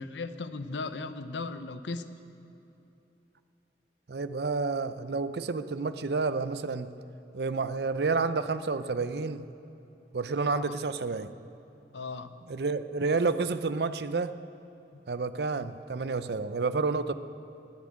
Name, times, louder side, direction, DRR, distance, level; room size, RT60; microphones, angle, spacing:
voice 1, 0.0-2.1 10.5-10.7 11.9-12.4 14.9-15.0, left 3 dB, 90° left, 11 dB, 0.8 m, -37 dB
voice 2, 4.1-6.9 7.3-9.4 10.1-11.3 12.5-14.3 15.1-17.1, right 4 dB, 65° right, 12 dB, 0.6 m, -30 dB
21.0 x 7.5 x 8.7 m, 2.9 s
head